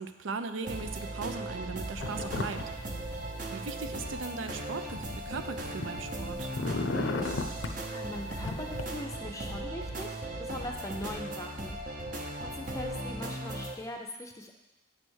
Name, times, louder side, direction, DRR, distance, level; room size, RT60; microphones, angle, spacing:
voice 1, 0.0-2.7 3.5-6.5, right 4 dB, 80° right, 9 dB, 0.5 m, -38 dB
sound 1, 0.6-13.7, right 1 dB, 40° right, 0.8 m, -38 dB
sound 2, 2.0-2.6 2.9-3.9 4.5-6.1 6.4-7.8 8.4-8.8, left 3 dB, 70° left, 0.5 m, -35 dB
voice 2, 7.7-14.5, left 1 dB, 15° left, 2 dB, 0.5 m, -41 dB
8.7 x 3.3 x 6.2 m, 1.0 s
head